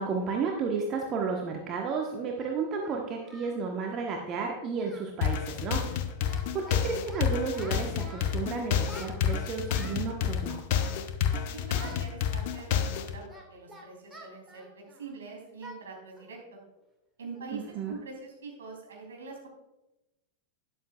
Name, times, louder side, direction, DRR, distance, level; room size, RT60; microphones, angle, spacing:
voice 1, 0.0-5.8 6.5-10.6 17.5-17.9, right 5 dB, 35° right, 1 dB, 1.3 m, -32 dB
Singing, 1.6-1.7 2.4-3.6 3.9-4.1 4.4-4.5 4.8-5.1 5.4-5.6 5.9-6.8 7.1-8.4 8.8-10.1 10.7-11.4 11.7-12.0 12.5-15.1 15.6-15.8 16.2-16.3 16.8-16.9 17.3-17.6, right 1 dB, 5° right, 2.2 m, -49 dB
sound 1, 5.2-13.2, left 8 dB, 50° left, 0.8 m, -29 dB
voice 2, 11.3-16.6 17.2-19.5, right 3 dB, 65° right, -1 dB, 3.5 m, -44 dB
12.5 x 10.5 x 2.4 m, 0.98 s
figure-of-eight pair, 90°, 0 cm